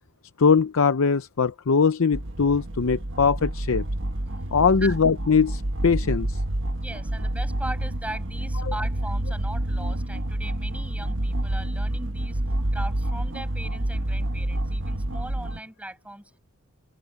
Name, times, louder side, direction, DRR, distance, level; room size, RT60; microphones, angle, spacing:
voice 1, 0.4-3.9 4.5-6.4 8.6-8.7, left 5 dB, 65° left, 0.6 m, -21 dB
sound 1, 2.1-15.6, right 1 dB, 60° right, 1.4 m, -28 dB
voice 2, 6.8-12.4 12.7-16.4, right 1 dB, 5° right, 7.5 m, -39 dB
open air
head